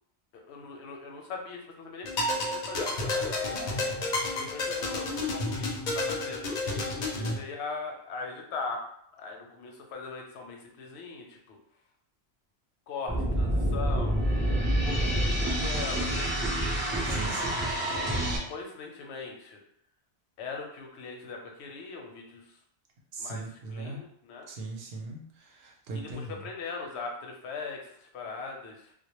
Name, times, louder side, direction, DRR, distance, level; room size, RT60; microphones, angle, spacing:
voice 1, 0.3-3.3 4.3-6.5 7.0-8.9 9.1-11.6 12.9-14.2 14.8-16.3 17.1-19.6 20.4-22.6 23.2-23.4 23.7-24.5 25.9-28.9, left 4 dB, 85° left, 1 dB, 0.9 m, -40 dB
sound 1, 2.0-7.4, left 2 dB, 55° left, 0.6 m, -31 dB
sound 2, 13.1-18.4, right 1 dB, 20° right, 0.3 m, -27 dB
voice 2, 17.0-17.6 23.1-24.0 24.5-26.4, right 2 dB, 70° right, 0 dB, 0.8 m, -39 dB
2.2 x 2.0 x 2.9 m, 0.68 s
omnidirectional pair, 1.1 m